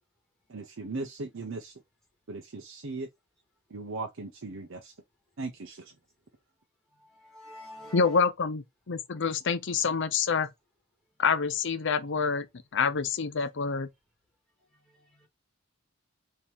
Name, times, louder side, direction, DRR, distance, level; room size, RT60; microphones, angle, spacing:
voice 1, 0.5-1.7 2.3-3.1 3.7-4.9 5.4-6.0, right 3 dB, 65° right, 0.7 m, -38 dB
voice 2, 7.0-8.3 14.9-15.3, left 1 dB, ahead, 1.9 m, -47 dB
voice 3, 7.9-10.5 11.2-12.5 12.7-13.9, left 5 dB, 60° left, 0.6 m, -27 dB
4.4 x 2.9 x 3.4 m
head